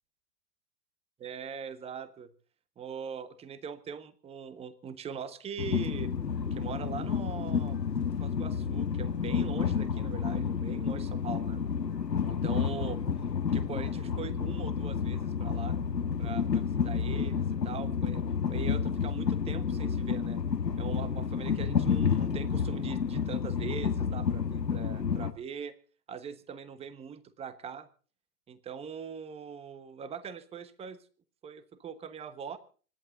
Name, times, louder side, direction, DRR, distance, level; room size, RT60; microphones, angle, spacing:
voice 1, 1.2-2.3 2.8-6.1 6.5-7.8 8.2-11.6 12.2-13.0 13.5-15.8 16.2-20.4 20.8-25.7 26.1-27.9 28.5-31.0 31.4-32.6, right 7 dB, 10° right, 15 dB, 1.2 m, -42 dB
Train, 5.6-25.3, left 6 dB, 90° left, 1.7 m, -30 dB
26.0 x 11.0 x 3.9 m, 0.40 s
hypercardioid pair, 125°, 49 cm